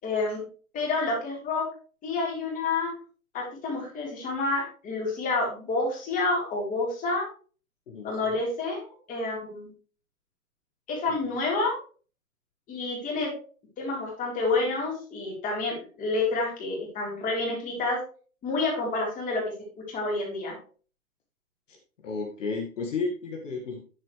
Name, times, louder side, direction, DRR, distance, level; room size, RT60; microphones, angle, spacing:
voice 1, 0.0-0.4 0.7-1.7 2.0-2.9 3.3-7.3 8.0-9.7 10.9-11.7 12.7-13.3 13.8-18.0 18.4-20.6, left 3 dB, 20° left, -3 dB, 4.0 m, -29 dB
voice 2, 22.0-23.8, left 4 dB, 55° left, 0 dB, 2.0 m, -32 dB
10.5 x 7.3 x 3.3 m, 0.40 s
hypercardioid pair, 135°, 43 cm